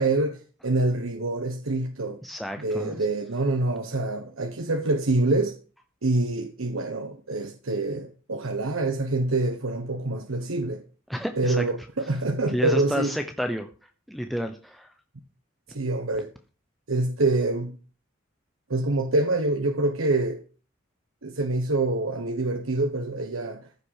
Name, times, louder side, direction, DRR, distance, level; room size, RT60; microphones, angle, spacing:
voice 1, 0.0-2.2 2.6-5.6 6.0-10.8 11.4-13.1 15.7-16.3 16.9-17.7 18.7-20.4 21.2-23.7, right 2 dB, 85° right, 1.1 m, -26 dB
voice 2, 2.2-3.0 11.1-11.6 12.5-13.7 14.1-14.9, equal, ahead, 0.9 m, -30 dB
14.5 x 6.2 x 6.5 m
head